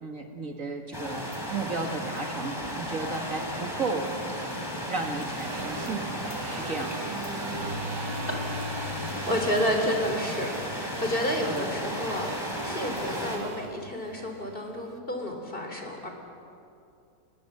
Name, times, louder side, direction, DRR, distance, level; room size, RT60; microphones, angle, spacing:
voice 1, 0.0-4.1 4.9-7.3 11.4-11.6, right 3 dB, 50° right, 3 dB, 2.2 m, -34 dB
sound 1, 0.9-13.4, equal, 10° left, 3.4 m, -34 dB
sound 2, 5.3-14.8, right 3 dB, 75° right, 2.1 m, -39 dB
voice 2, 9.3-16.1, equal, 30° left, 3 dB, 3.6 m, -30 dB
28.0 x 20.5 x 8.0 m, 2.5 s
omnidirectional pair, 1.9 m